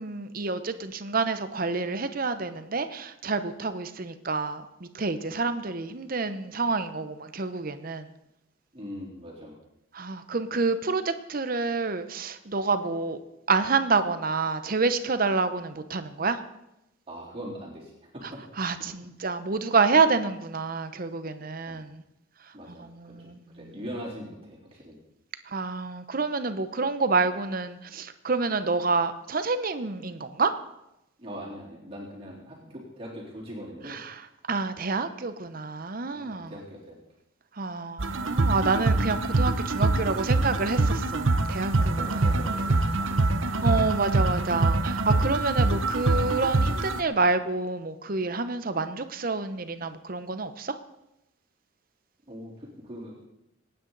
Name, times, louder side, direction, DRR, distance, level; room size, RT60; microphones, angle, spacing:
voice 1, 0.0-8.1 9.9-13.2 13.5-16.4 18.6-22.0 22.7-23.7 25.5-30.5 33.9-34.1 34.5-36.5 37.6-42.3 43.6-50.8, right 4 dB, 45° right, 11 dB, 0.9 m, -28 dB
voice 2, 8.7-9.6 17.1-18.4 18.7-18.8 21.7-21.8 22.5-25.0 31.2-34.0 36.1-37.0 41.7-43.4 52.3-53.3, equal, 30° right, -5 dB, 3.6 m, -41 dB
sound 1, 38.0-47.0, right 2 dB, 75° right, 0.9 m, -25 dB
25.5 x 9.4 x 4.0 m, 0.89 s
head